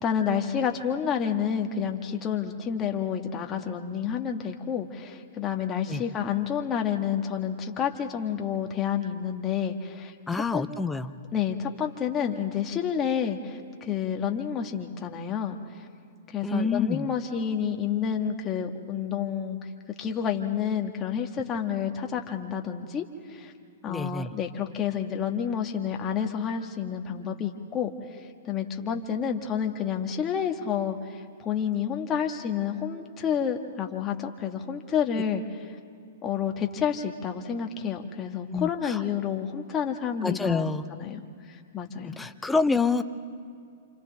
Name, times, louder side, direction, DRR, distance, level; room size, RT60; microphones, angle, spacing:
voice 1, 0.0-10.7 11.3-15.8 16.3-19.7 20.0-23.5 23.8-35.7 36.2-41.2 41.5-42.1, left 8 dB, 25° left, 3 dB, 1.5 m, -29 dB
voice 2, 10.3-11.1 16.4-17.1 23.9-24.3 38.5-39.0 40.2-40.8 42.0-43.0, left 4 dB, 10° left, 10 dB, 0.7 m, -27 dB
28.5 x 27.5 x 3.5 m, 2.4 s
hypercardioid pair, 130°, 0 cm